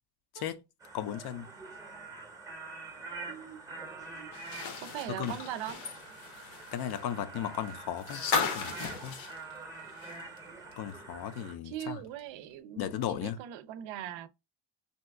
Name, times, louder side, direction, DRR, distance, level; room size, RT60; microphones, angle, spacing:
sound 1, 0.8-11.6, right 3 dB, 10° right, 0.7 m, -45 dB
voice 1, 0.9-1.5 5.1-5.4 6.7-8.3 8.5-9.2 10.8-12.0 12.8-13.4, left 10 dB, 55° left, 0.5 m, -36 dB
voice 2, 3.3-3.6 4.1-4.3 4.8-5.8 11.6-14.3, right 11 dB, 75° right, 0.5 m, -40 dB
sound 2, 4.3-10.4 10.7-10.8 12.2-12.3, left 5 dB, 80° left, 0.9 m, -36 dB
2.8 x 2.3 x 3.3 m
cardioid pair, 120°, 45 cm